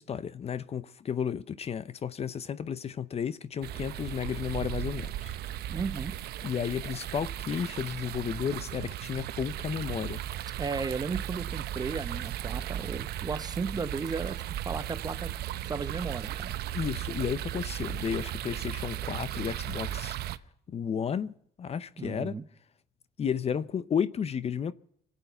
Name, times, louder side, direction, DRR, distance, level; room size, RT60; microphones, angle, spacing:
voice 1, 0.0-5.3 6.4-10.2 16.6-20.2 20.7-21.3 21.6-22.4 23.2-24.7, left 7 dB, 40° left, 0.7 m, -33 dB
sound 1, 3.6-20.4, right 12 dB, 70° right, 0.8 m, -36 dB
voice 2, 5.7-6.2 10.6-15.3 15.6-16.6 22.0-22.4, right 4 dB, 25° right, 0.8 m, -35 dB
25.0 x 8.4 x 6.8 m
cardioid pair, 110°, 17 cm